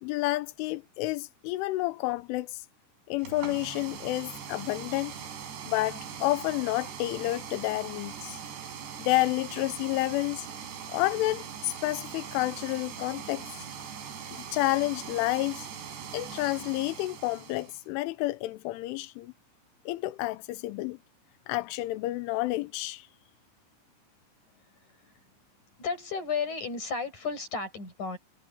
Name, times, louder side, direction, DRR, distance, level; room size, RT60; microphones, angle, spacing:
voice 1, 0.0-2.6 3.1-5.1 5.7-8.4 9.0-10.5 10.9-13.5 14.5-15.7 16.1-19.3 19.9-21.0 21.5-23.1, left 18 dB, 90° left, 3.3 m, -30 dB
sound 1, 3.2-17.8, right 7 dB, 65° right, 5.7 m, -41 dB
voice 2, 25.8-28.2, left 5 dB, 40° left, 8.8 m, -33 dB
omnidirectional pair, 5.5 m